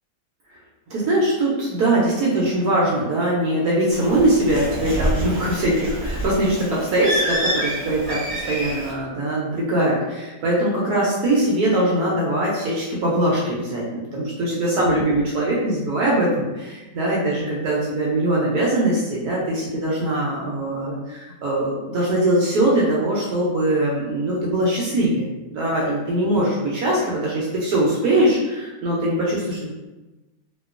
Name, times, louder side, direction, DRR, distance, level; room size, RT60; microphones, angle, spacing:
voice 1, 0.9-8.2 8.5-25.3 25.5-29.7, right 1 dB, 70° right, -5 dB, 1.0 m, -21 dB
Bird, 3.9-8.9, equal, 35° right, 0.8 m, -27 dB
2.9 x 2.2 x 2.3 m, 1.1 s
omnidirectional pair, 2.0 m